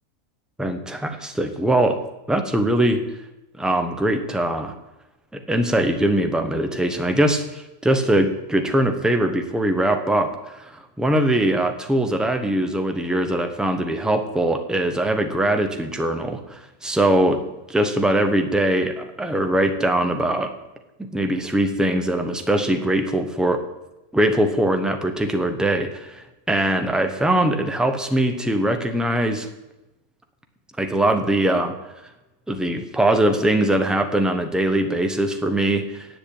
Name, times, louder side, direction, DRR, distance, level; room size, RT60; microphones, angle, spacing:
voice 1, 0.6-2.0 2.3-3.0 3.6-4.7 5.3-17.4 17.7-20.5 21.0-23.6 24.1-29.5 30.8-31.8 32.5-36.1, right 1 dB, ahead, 6 dB, 0.7 m, -21 dB
8.7 x 7.7 x 8.8 m, 0.98 s
omnidirectional pair, 1.5 m